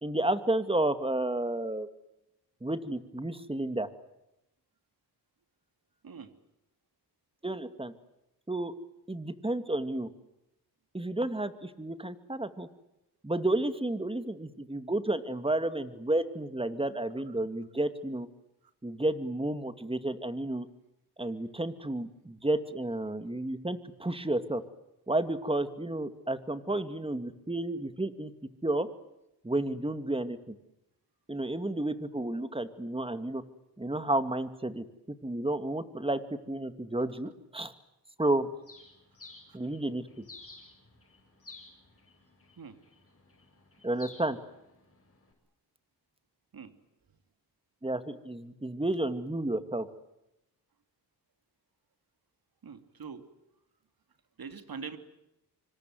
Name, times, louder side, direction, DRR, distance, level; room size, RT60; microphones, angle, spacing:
voice 1, 0.0-1.9 2.6-3.9 7.4-7.9 8.5-8.7 9.1-10.1 10.9-12.7 13.2-18.3 18.8-20.7 21.2-24.6 25.1-28.3 28.6-28.9 29.4-30.6 31.3-33.4 33.8-36.2 36.5-37.7 38.2-38.5 39.5-40.2 43.8-44.4 47.8-49.9, right 1 dB, 15° right, 10 dB, 2.3 m, -31 dB
Bird, 38.6-45.3, left 3 dB, 35° left, 7.8 m, -54 dB
voice 2, 52.6-53.3 54.4-55.0, right 5 dB, 60° right, 9 dB, 2.8 m, -43 dB
26.5 x 25.5 x 7.8 m, 0.89 s
cardioid pair, 75°, 40 cm